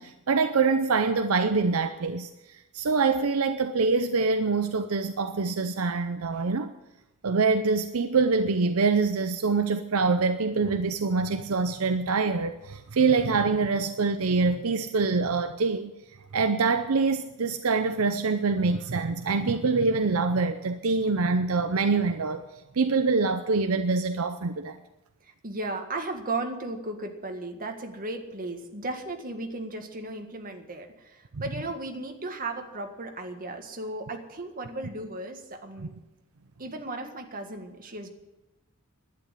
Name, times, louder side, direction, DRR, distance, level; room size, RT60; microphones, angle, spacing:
voice 1, 0.0-6.7 7.2-15.9 16.3-22.4 22.7-24.8 31.3-31.4, right 4 dB, 70° right, 8 dB, 0.7 m, -25 dB
voice 2, 25.2-36.0 36.6-38.1, right 2 dB, 40° right, 4 dB, 1.8 m, -35 dB
11.5 x 9.8 x 10.0 m, 1.0 s
head